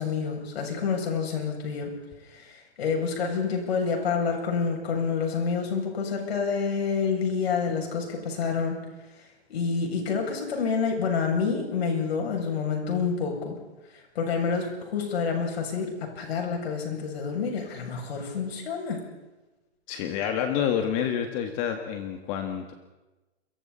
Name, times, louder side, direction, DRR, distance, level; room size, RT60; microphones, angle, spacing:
voice 1, 0.0-1.9 2.3-8.8 9.5-13.6 13.9-19.0, left 5 dB, 65° left, 1 dB, 7.5 m, -28 dB
voice 2, 19.9-22.7, left 8 dB, 30° left, 5 dB, 1.9 m, -28 dB
28.5 x 23.5 x 4.3 m, 1.1 s
hypercardioid pair, 145°, 34 cm